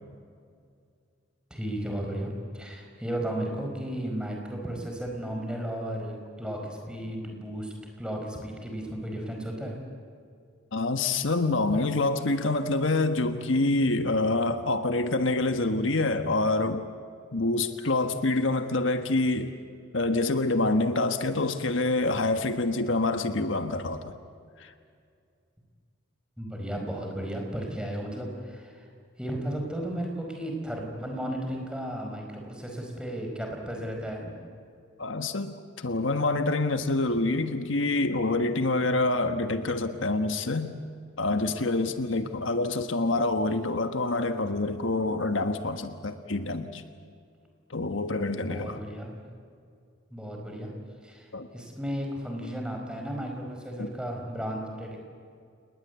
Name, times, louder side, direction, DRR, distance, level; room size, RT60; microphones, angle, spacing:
voice 1, 1.5-9.8 26.4-28.8 29.2-34.3 48.5-49.2 50.1-50.7 51.0-51.3 51.5-55.0, right 1 dB, 5° right, 1 dB, 5.1 m, -34 dB
voice 2, 10.7-16.9 17.3-19.5 19.9-24.1 24.6-24.7 35.0-40.7 41.2-46.8 47.7-48.8 51.3-51.5 53.8-53.9, left 2 dB, 75° left, 8 dB, 1.4 m, -26 dB
29.5 x 20.0 x 8.3 m, 2.3 s
head